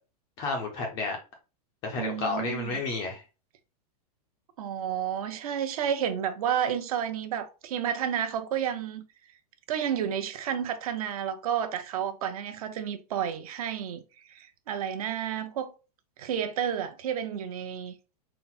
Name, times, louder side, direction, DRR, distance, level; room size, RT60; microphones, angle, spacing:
voice 1, 0.4-1.2 1.8-3.2, left 3 dB, 20° left, 0.4 m, -31 dB
voice 2, 2.0-2.8 4.6-9.0 9.7-14.0 14.3-15.7 16.2-17.9, right 9 dB, 60° right, 0.7 m, -31 dB
3.9 x 2.0 x 4.1 m
supercardioid pair, 175°, 21 cm